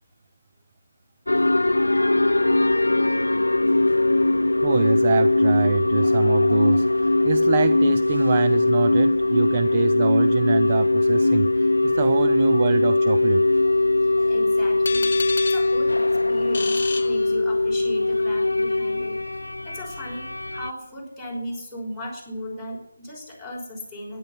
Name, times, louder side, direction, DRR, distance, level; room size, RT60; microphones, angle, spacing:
sound 1, 1.3-20.7, left 2 dB, 90° left, 0.5 m, -20 dB
voice 1, 4.6-13.5, right 7 dB, 35° right, 10 dB, 0.5 m, -25 dB
voice 2, 13.6-15.1 15.4-19.2 19.6-24.2, left 1 dB, 5° right, -5 dB, 5.7 m, -36 dB
sound 2, 14.8-17.9, left 4 dB, 50° left, 0.8 m, -32 dB
13.0 x 11.0 x 9.8 m, 0.76 s
figure-of-eight pair, 160°, 0 cm